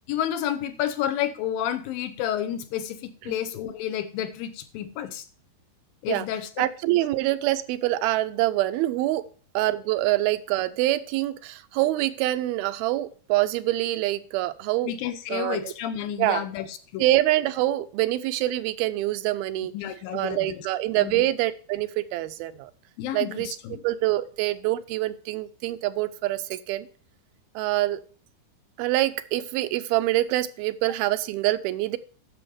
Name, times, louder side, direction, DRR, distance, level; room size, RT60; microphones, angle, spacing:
voice 1, 0.1-5.3 6.0-7.0 14.8-17.1 19.7-20.7 21.0-21.3 23.0-23.8, left 10 dB, 75° left, 11 dB, 2.5 m, -30 dB
voice 2, 6.6-9.2 9.5-14.9 15.3-15.7 16.2-16.4 17.0-19.7 20.1-22.7 23.1-23.6 23.8-26.9 27.6-28.0 28.8-32.0, right 16 dB, 85° right, 12 dB, 2.5 m, -25 dB
9.9 x 6.9 x 5.0 m, 0.43 s
omnidirectional pair, 4.3 m